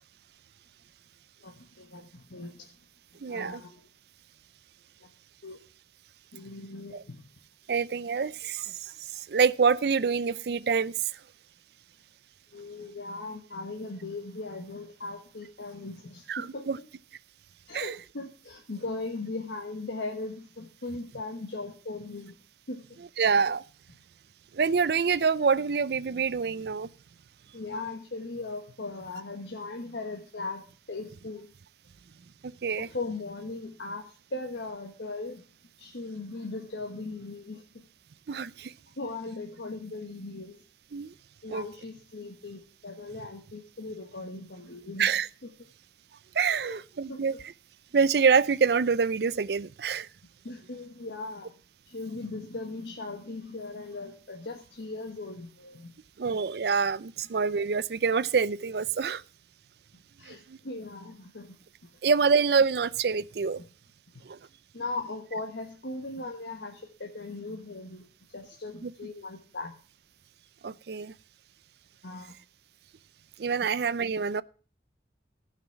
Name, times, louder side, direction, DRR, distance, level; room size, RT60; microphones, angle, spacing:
voice 1, 1.4-2.7 3.3-3.9 5.0-5.1 5.4-5.6 6.3-7.2 12.5-16.7 17.7-22.3 22.7-23.0 27.5-31.5 32.8-35.4 35.8-37.9 39.0-40.6 41.4-45.2 46.6-46.8 47.1-47.4 50.4-51.5 51.9-55.9 60.2-61.6 61.8-61.9 64.7-69.7 72.0-72.4, left 3 dB, 85° left, 1.3 m, -38 dB
voice 2, 3.2-3.6 6.9-7.0 7.7-11.1 16.3-16.8 17.7-18.0 23.2-23.6 24.5-26.9 32.4-32.9 38.3-38.7 40.9-41.1 41.5-41.7 45.0-45.3 46.3-47.3 47.9-50.1 56.2-59.2 60.2-60.6 62.0-63.6 64.2-64.4 68.8-68.9 70.6-71.1 73.4-74.4, right 5 dB, 65° right, 0.4 m, -26 dB
16.0 x 5.9 x 5.9 m
head